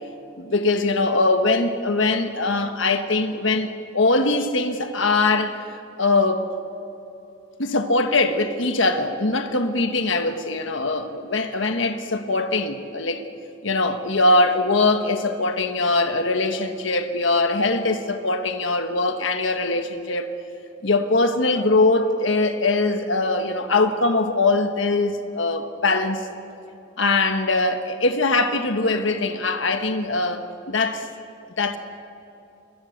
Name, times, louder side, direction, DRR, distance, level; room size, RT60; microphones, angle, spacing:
voice 1, 0.4-5.6 6.0-6.5 7.6-13.2 13.6-20.3 20.8-26.3 27.0-31.0 31.6-31.8, left 2 dB, 65° left, 1.4 m, -22 dB
26.5 x 22.5 x 6.6 m
head